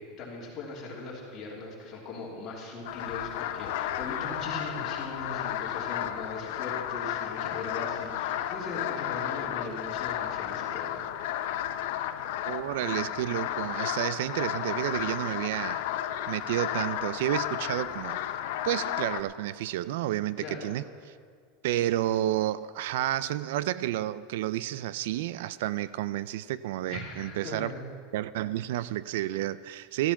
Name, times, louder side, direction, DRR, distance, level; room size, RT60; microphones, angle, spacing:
voice 1, 0.2-11.0 20.4-20.7 26.9-27.8, left 2 dB, 25° left, -4 dB, 3.1 m, -39 dB
sound 1, 2.8-19.2, left 11 dB, 55° left, 0.6 m, -33 dB
voice 2, 12.5-15.9 16.3-18.2 18.6-20.8 21.6-27.7 28.1-30.1, right 13 dB, 65° right, 17 dB, 0.3 m, -30 dB
14.0 x 13.0 x 5.8 m, 2.1 s
supercardioid pair, 180°, 0 cm